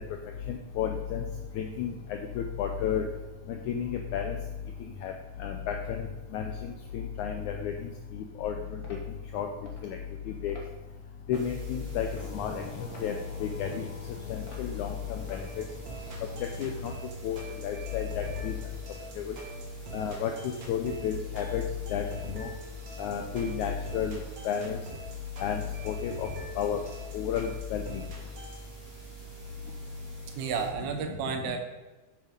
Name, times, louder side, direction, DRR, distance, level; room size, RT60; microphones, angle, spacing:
voice 1, 0.8-1.2 1.6-1.9 2.6-3.0 3.7-4.3 5.0-5.1 5.4-6.0 6.3-6.4 6.9-7.7 8.4-8.5 9.3-9.5 10.4-10.5 11.3-12.1 12.3-12.5 13.0-13.1 13.4-13.8 14.6-14.9 16.6-16.7 17.2-17.4 17.6-18.5 19.9-20.3 20.7-21.6 21.9-22.0 22.3-22.5 23.0-24.1 24.4-24.8 25.4-25.5 25.9-26.1 26.6-26.8 27.1-27.8, left 8 dB, 85° left, 4 dB, 1.7 m, -31 dB
sound 1, 8.8-9.1 9.7-9.9 10.5-10.7 11.3-11.6 12.1-12.5 12.9-13.1 13.7-13.9 14.5-14.7 15.3-15.5 16.1-16.2, left 2 dB, 65° left, 0.9 m, -49 dB
sound 2, 11.3-30.7, left 2 dB, 15° right, 2.1 m, -45 dB
sound 3, 15.4-28.6, right 1 dB, 40° right, 1.8 m, -45 dB
voice 2, 30.4-31.6, right 6 dB, 85° right, 5 dB, 2.9 m, -31 dB
8.1 x 7.3 x 5.2 m, 1.2 s
omnidirectional pair, 4.1 m